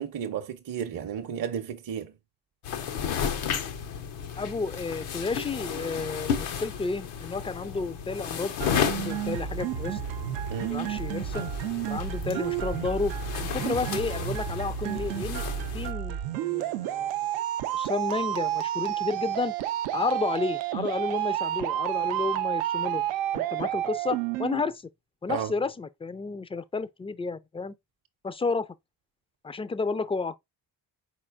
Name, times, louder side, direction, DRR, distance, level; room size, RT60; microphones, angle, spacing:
voice 1, 0.0-2.1 10.5-10.8 25.3-25.5, right 8 dB, 45° right, 0.7 m, -33 dB
sound 1, 2.6-15.9, left 8 dB, 80° left, 0.8 m, -33 dB
voice 2, 4.4-10.0 10.7-11.5 11.9-15.4 15.7-17.1 17.7-19.5 19.9-23.0 23.3-24.8 25.2-27.7 28.2-28.7 29.4-30.4, left 4 dB, 15° left, 0.3 m, -31 dB
sound 2, 8.6-24.6, right 12 dB, 80° right, 0.5 m, -30 dB
4.3 x 4.2 x 2.4 m
supercardioid pair, 50°, 47 cm